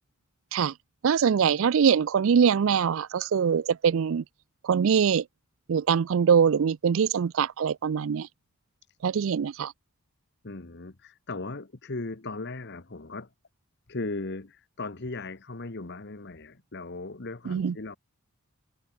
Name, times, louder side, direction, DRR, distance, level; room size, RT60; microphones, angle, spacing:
voice 1, 1.0-4.2 4.6-5.2 5.7-8.3 9.0-9.7 17.5-17.7, right 7 dB, 60° right, 0.4 m, -23 dB
voice 2, 10.4-13.3 13.9-18.0, left 3 dB, 50° left, 1.1 m, -37 dB
head